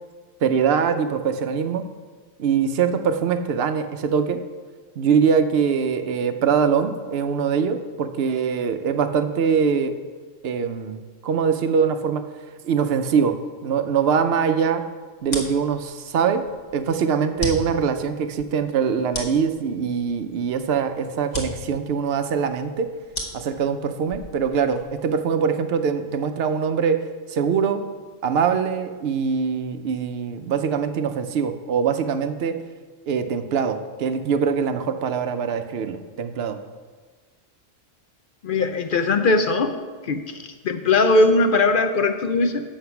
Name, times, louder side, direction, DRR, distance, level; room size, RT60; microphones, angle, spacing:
voice 1, 0.4-1.8 2.4-4.4 5.0-9.9 10.4-12.2 12.6-13.4 13.6-14.8 15.2-16.4 16.7-22.9 23.3-27.0 27.3-27.8 28.2-32.6 33.1-36.6, right 6 dB, 60° right, 9 dB, 0.8 m, -23 dB
sound 1, 15.2-25.1, left 1 dB, 35° left, 1.3 m, -36 dB
voice 2, 38.4-39.7 40.0-42.6, left 3 dB, 60° left, 7 dB, 0.6 m, -20 dB
7.9 x 6.5 x 5.7 m, 1.4 s
omnidirectional pair, 1.3 m